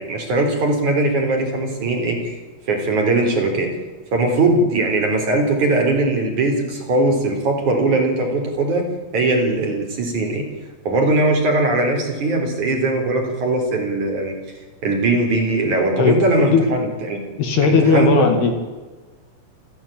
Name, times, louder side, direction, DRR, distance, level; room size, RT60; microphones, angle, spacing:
voice 1, 0.0-2.4 2.7-3.7 4.1-8.9 9.1-10.4 10.9-14.4 14.8-17.2 17.6-18.3, right 2 dB, 40° right, 2 dB, 5.0 m, -20 dB
voice 2, 17.4-18.5, left 4 dB, 60° left, 6 dB, 3.8 m, -16 dB
28.5 x 15.5 x 8.9 m, 1.3 s
omnidirectional pair, 5.7 m